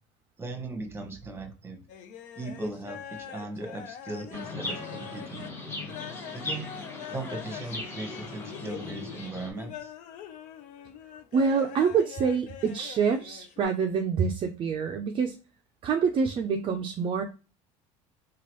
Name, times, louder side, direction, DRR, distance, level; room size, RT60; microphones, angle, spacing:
voice 1, 0.4-1.8 2.4-5.5 6.3-6.6 7.1-9.9, right 2 dB, 15° right, 4 dB, 1.0 m, -38 dB
sound 1, 1.9-13.6, left 9 dB, 65° left, 0.5 m, -43 dB
Chirp tweet, 4.3-9.5, left 2 dB, 20° left, 1.2 m, -39 dB
voice 2, 11.3-15.4 15.8-17.2, right 6 dB, 40° right, 5 dB, 0.4 m, -26 dB
2.9 x 2.3 x 3.0 m, 0.34 s
supercardioid pair, 110°, 14 cm